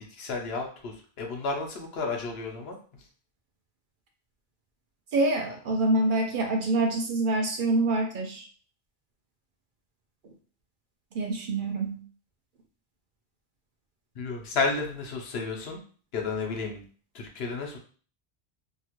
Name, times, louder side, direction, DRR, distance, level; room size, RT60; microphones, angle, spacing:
voice 1, 0.2-2.8 14.2-15.8 16.1-16.8 17.1-17.8, left 4 dB, 75° left, 1 dB, 0.9 m, -32 dB
voice 2, 5.1-8.5 11.1-12.0, right 2 dB, 60° right, 3 dB, 0.6 m, -26 dB
2.8 x 2.3 x 2.9 m, 0.41 s
omnidirectional pair, 1.1 m